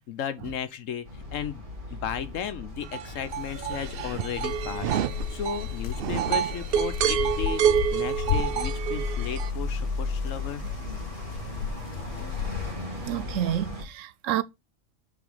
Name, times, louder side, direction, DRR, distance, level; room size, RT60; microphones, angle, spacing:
voice 1, 0.1-10.6, left 8 dB, 90° left, 1.2 m, -35 dB
sound 1, 1.0-13.8, left 2 dB, 40° right, 1.8 m, -37 dB
sound 2, 2.9-9.5, right 9 dB, 60° right, 0.6 m, -28 dB
sound 3, 3.3-12.8, left 8 dB, 65° left, 0.8 m, -34 dB
voice 2, 13.0-14.4, right 11 dB, 80° right, 0.9 m, -29 dB
5.0 x 4.3 x 5.4 m
omnidirectional pair, 1.3 m